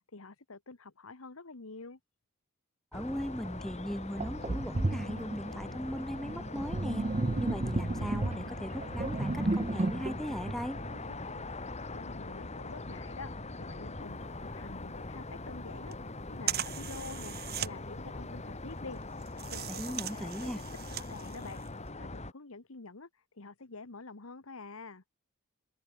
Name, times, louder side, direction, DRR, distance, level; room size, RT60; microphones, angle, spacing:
voice 1, 0.1-2.0 11.9-13.3 13.6-16.0 16.3-19.0 19.5-20.5 20.9-21.6 22.0-23.1 23.3-25.0, left 3 dB, 65° left, 1.4 m, -47 dB
sound 1, 2.9-22.3, left 2 dB, 30° left, 2.3 m, -42 dB
voice 2, 2.9-7.1 7.4-10.8 19.7-20.6, equal, ahead, 0.5 m, -38 dB
Sink (filling or washing), 3.5-3.6 4.2-11.5, right 2 dB, 30° right, 0.7 m, -34 dB
sound 2, 14.0-21.9, right 11 dB, 45° right, 1.8 m, -41 dB
head